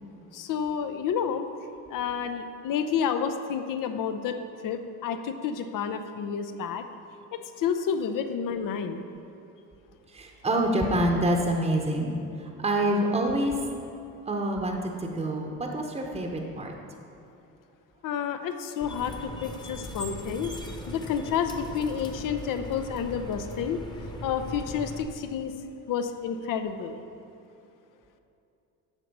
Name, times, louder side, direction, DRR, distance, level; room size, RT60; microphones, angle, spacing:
voice 1, 0.3-1.5 1.9-4.3 4.6-6.8 7.3-9.0 18.0-20.5 20.9-23.8 24.2-25.5 25.9-27.0, left 7 dB, 55° left, 8 dB, 0.8 m, -30 dB
voice 2, 10.1-13.6 14.3-16.7, right 1 dB, 15° right, 2 dB, 1.0 m, -27 dB
sound 1, 18.8-25.0, left 1 dB, 10° left, 1.1 m, -39 dB
8.1 x 5.9 x 5.4 m, 2.7 s
supercardioid pair, 75°, 38 cm